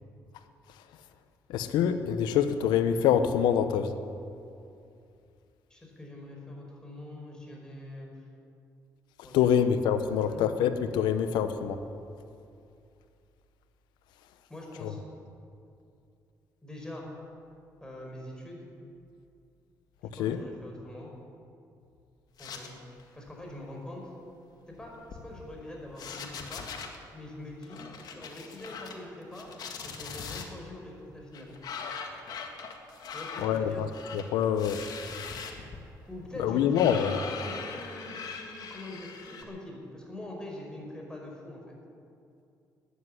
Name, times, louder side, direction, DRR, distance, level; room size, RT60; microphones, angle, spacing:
voice 1, 1.5-3.9 9.3-11.8 14.8-14.9 20.2-20.4 33.4-34.8 36.4-37.2, left 8 dB, 90° left, 10 dB, 0.9 m, -25 dB
voice 2, 5.7-8.1 9.2-9.7 10.1-10.5 14.5-15.0 16.6-17.1 17.8-18.7 20.1-21.1 22.4-22.7 23.1-24.0 24.7-26.7 27.1-29.5 29.8-31.5 33.1-33.8 36.1-41.7, left 1 dB, 10° left, -1 dB, 5.0 m, -44 dB
sound 1, 22.4-23.0 23.3-23.5 24.7-25.6 25.9-27.0 27.6-29.0 29.3-30.5 31.3-39.4, left 5 dB, 65° left, 1.9 m, -41 dB
13.0 x 9.9 x 9.9 m, 2.5 s
cardioid pair, 80°, 7 cm